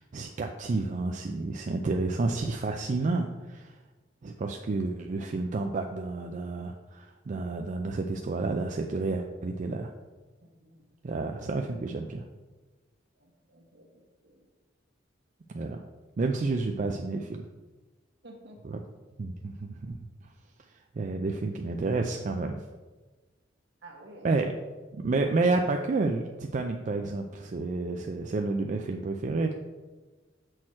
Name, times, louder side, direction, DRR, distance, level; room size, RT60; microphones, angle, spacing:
voice 1, 0.0-3.8 4.2-9.9 11.0-12.2 15.5-15.8 16.2-17.5 18.6-18.8 19.2-20.0 20.7-22.6 24.2-24.5 24.9-29.5, right 3 dB, 40° right, 4 dB, 0.4 m, -30 dB
voice 2, 10.4-10.8 13.2-14.4 18.2-18.6 23.8-24.5, right 1 dB, 65° right, 1 dB, 1.4 m, -51 dB
6.4 x 6.1 x 4.3 m, 1.3 s
head